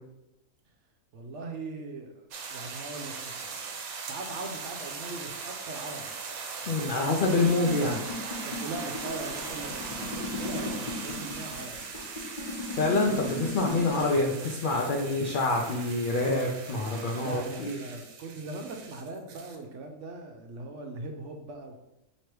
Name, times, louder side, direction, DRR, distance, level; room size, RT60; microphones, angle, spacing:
voice 1, 1.1-3.6 4.1-6.1 6.6-7.1 8.4-11.7 13.1-13.2 17.2-21.8, right 3 dB, 70° right, 3 dB, 0.8 m, -40 dB
sound 1, 2.3-19.6, right 5 dB, 90° right, 1.1 m, -40 dB
voice 2, 6.7-8.0 12.8-17.8, left 2 dB, 80° left, 1 dB, 0.4 m, -26 dB
sound 2, 7.2-14.1, left 2 dB, 40° left, 1.0 m, -37 dB
3.1 x 2.9 x 4.5 m, 0.91 s
omnidirectional pair, 1.4 m